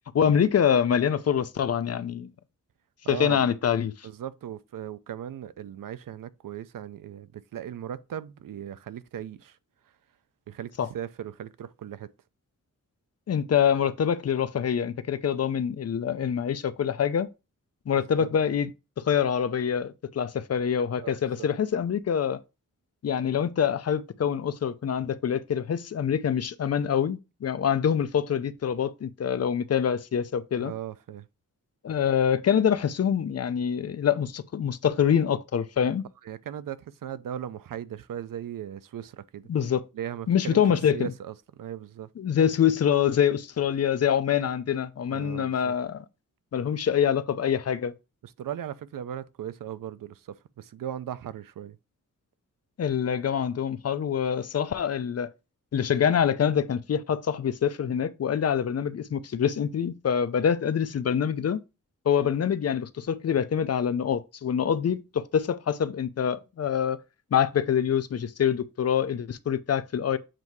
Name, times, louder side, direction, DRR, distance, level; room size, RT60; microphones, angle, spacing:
voice 1, 0.1-2.3 3.1-4.1 10.8-10.9 13.3-17.3 17.9-18.7 19.0-22.4 23.0-30.7 31.8-36.0 39.5-39.8 40.3-41.1 42.2-46.0 46.5-47.9 52.8-55.3 55.7-61.6 62.1-67.0 67.3-70.2, left 8 dB, 50° left, 0.5 m, -25 dB
voice 2, 3.0-3.5 4.0-9.6 10.5-12.1 18.0-18.3 21.0-21.5 30.6-31.3 36.2-39.5 39.9-40.6 40.9-42.1 45.1-45.7 48.2-51.8, right 10 dB, 80° right, 0.5 m, -38 dB
7.5 x 2.7 x 4.6 m
wide cardioid pair, 150°, 32 cm